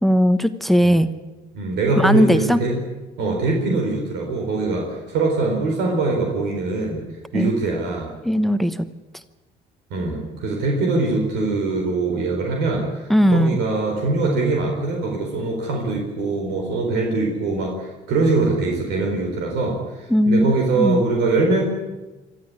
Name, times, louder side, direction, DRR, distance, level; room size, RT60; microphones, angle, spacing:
voice 1, 0.0-1.1 2.0-2.6 7.3-7.5 8.2-8.9 13.1-13.6 20.1-20.4 20.8-21.0, equal, ahead, 12 dB, 1.0 m, -17 dB
voice 2, 1.5-2.8 3.2-7.0 7.3-8.1 9.9-21.6, right 3 dB, 85° right, 1 dB, 4.5 m, -23 dB
24.0 x 13.5 x 9.8 m, 1.2 s
cardioid pair, 110°, 17 cm